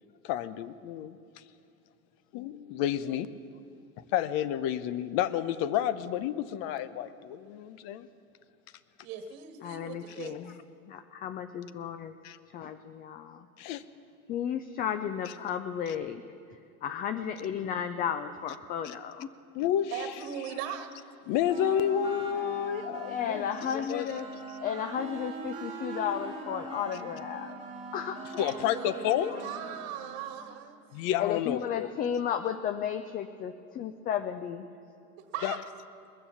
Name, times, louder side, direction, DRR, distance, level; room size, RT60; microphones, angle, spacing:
voice 1, 0.2-1.2 2.3-3.3 4.1-8.1 12.2-12.4 13.6-13.8 18.8-18.9 19.5-20.1 21.3-24.0 28.4-29.4 30.9-31.9 35.4-35.6, left 10 dB, 55° left, 15 dB, 0.7 m, -30 dB
voice 2, 9.0-10.4 19.6-20.9 28.4-30.8 35.3-35.6, right 9 dB, 60° right, 7 dB, 1.5 m, -39 dB
voice 3, 9.6-10.5 10.9-12.1 12.5-13.5 14.3-16.2 16.8-19.3 23.1-24.3 24.6-27.6 27.9-28.2 31.2-34.7, left 8 dB, 25° left, 10 dB, 0.3 m, -33 dB
sound 1, 21.5-30.3, right 3 dB, 15° right, 2.4 m, -42 dB
20.5 x 6.9 x 7.1 m, 2.5 s
supercardioid pair, 110°, 42 cm